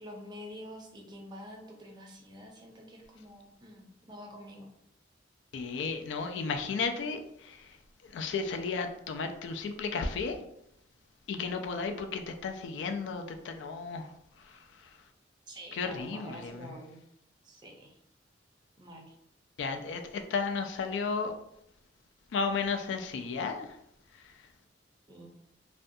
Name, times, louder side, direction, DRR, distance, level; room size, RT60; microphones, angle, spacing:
voice 1, 0.0-4.7 15.5-17.0 17.4-18.0 18.8-19.1 25.1-25.3, equal, 25° right, 0 dB, 0.5 m, -47 dB
voice 2, 5.5-7.2 8.1-10.4 11.3-14.0 15.8-16.5 19.6-20.0 20.3-21.3 22.3-23.7, left 4 dB, 75° left, 5 dB, 0.3 m, -33 dB
2.5 x 2.2 x 2.6 m, 0.76 s
head